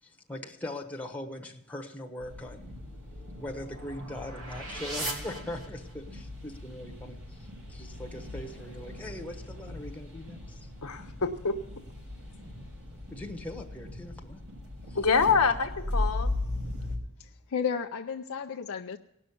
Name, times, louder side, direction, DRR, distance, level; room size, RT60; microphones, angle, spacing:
voice 1, 0.0-2.7 3.3-10.7 13.1-14.4 14.9-15.0, left 1 dB, 5° left, 1.2 m, -41 dB
sound 1, 2.2-17.0, left 1 dB, 65° right, 4.5 m, -38 dB
sound 2, 2.8-6.2, right 2 dB, 85° right, 2.8 m, -40 dB
voice 2, 10.8-11.6 14.9-16.3, left 5 dB, 85° left, 1.1 m, -26 dB
voice 3, 17.2-19.0, left 6 dB, 65° left, 0.5 m, -33 dB
18.0 x 6.3 x 8.4 m
head